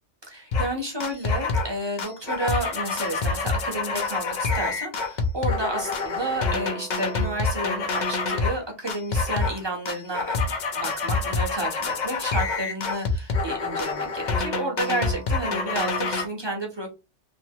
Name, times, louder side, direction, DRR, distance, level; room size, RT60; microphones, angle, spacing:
voice 1, 0.2-16.9, right 1 dB, 25° right, 0 dB, 0.8 m, -31 dB
sound 1, 0.5-0.7 1.0-1.7 2.0-8.6 8.9-9.6 9.9-16.3, left 4 dB, 50° left, 0.6 m, -27 dB
2.9 x 2.6 x 2.7 m, 0.27 s
omnidirectional pair, 1.3 m